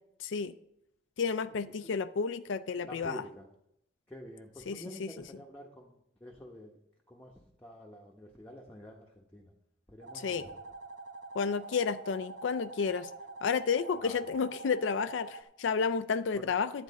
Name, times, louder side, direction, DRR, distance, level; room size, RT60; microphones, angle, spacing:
voice 1, 0.2-0.5 1.2-3.2 4.7-5.1 10.1-10.5 11.3-13.1 13.4-16.8, left 5 dB, 85° left, 12 dB, 0.4 m, -31 dB
voice 2, 2.8-3.5 4.1-6.8 7.1-7.3 7.6-9.5 9.9-10.6 14.0-14.2 16.3-16.5, equal, 10° left, -2 dB, 0.9 m, -48 dB
sound 1, 10.0-15.4, right 3 dB, 70° right, 0.8 m, -46 dB
10.5 x 8.3 x 4.1 m, 0.79 s
head